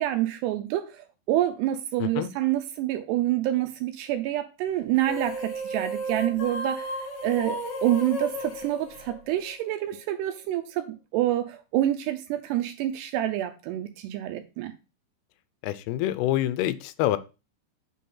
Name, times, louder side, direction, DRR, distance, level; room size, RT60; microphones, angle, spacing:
voice 1, 0.0-6.9 7.2-14.7, right 13 dB, 80° right, 2.7 m, -27 dB
sound 1, 5.0-9.7, equal, 60° left, 1.6 m, -34 dB
voice 2, 15.6-17.2, left 14 dB, 80° left, 2.5 m, -26 dB
8.3 x 3.9 x 5.5 m
omnidirectional pair, 4.9 m